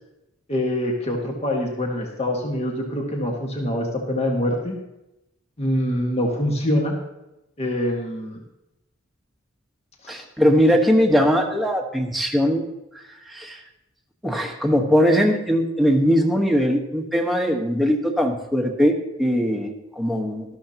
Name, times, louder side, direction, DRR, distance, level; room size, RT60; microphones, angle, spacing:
voice 1, 0.5-4.8 5.6-6.9 7.6-8.4 10.0-10.2, left 1 dB, 30° left, 0 dB, 1.6 m, -24 dB
voice 2, 10.1-12.6 13.3-13.6 14.2-20.4, equal, ahead, 1 dB, 1.3 m, -20 dB
13.0 x 13.0 x 2.9 m, 0.92 s
head